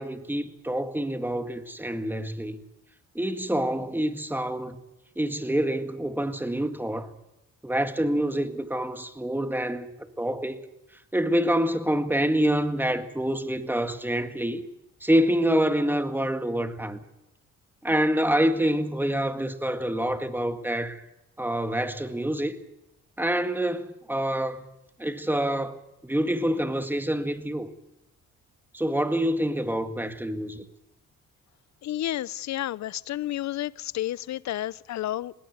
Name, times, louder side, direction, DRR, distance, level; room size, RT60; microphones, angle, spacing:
voice 1, 0.0-2.6 3.2-4.8 5.2-7.1 7.6-10.6 11.1-14.6 15.0-17.0 17.8-21.0 21.4-22.6 23.2-24.7 25.0-25.8 26.0-27.7 28.7-30.6, right 1 dB, 5° right, 2.0 m, -26 dB
voice 2, 31.8-35.3, left 13 dB, 65° left, 0.7 m, -31 dB
20.5 x 18.0 x 8.1 m
cardioid pair, 90°, 30 cm